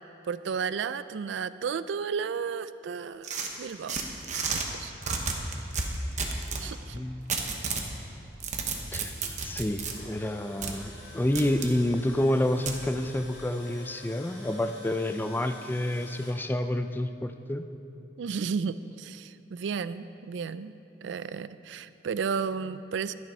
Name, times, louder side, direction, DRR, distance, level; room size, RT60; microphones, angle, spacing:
voice 1, 0.2-4.0 4.5-4.9 6.6-7.0 18.2-20.7 21.0-23.1, right 6 dB, 70° right, 15 dB, 0.3 m, -33 dB
sound 1, 3.2-4.7 5.0-6.7 7.3-7.9 8.3-9.9 10.6-10.7 11.3-11.7 12.7-12.8, right 4 dB, 40° right, 1.0 m, -31 dB
voice 2, 6.5-7.4 8.9-9.1 9.4-17.6, left 1 dB, 10° left, 8 dB, 0.4 m, -29 dB
Tools, 9.6-16.3, left 2 dB, 65° left, 2.2 m, -48 dB
11.0 x 10.5 x 5.4 m, 2.9 s
head